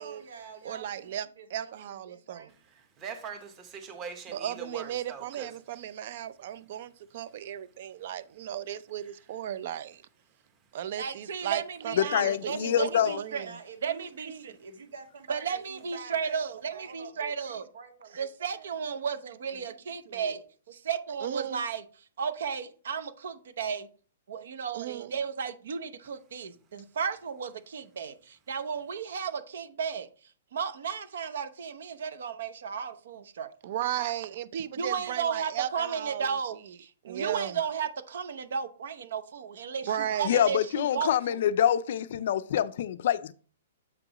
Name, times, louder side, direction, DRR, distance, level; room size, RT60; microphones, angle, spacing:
voice 1, 0.0-2.5 13.3-16.4 16.7-18.7 19.5-20.4, right 5 dB, 80° right, 2.1 m, -48 dB
voice 2, 0.6-2.5 4.3-10.0 10.7-13.5 21.2-21.6 24.7-25.1 33.6-36.3 37.0-37.6 39.9-40.4, right 11 dB, 40° right, 0.5 m, -35 dB
voice 3, 3.0-5.5, right 6 dB, 20° right, 1.1 m, -41 dB
voice 4, 11.0-13.5 13.8-14.5 15.3-17.6 18.1-20.4 20.7-21.8 22.2-23.9 24.3-30.1 30.5-33.5 34.0-34.1 34.8-41.4, right 6 dB, 65° right, 0.9 m, -34 dB
voice 5, 11.9-13.2 40.2-43.3, left 10 dB, 50° left, 0.4 m, -26 dB
7.8 x 6.0 x 3.0 m
hypercardioid pair, 175°, 0 cm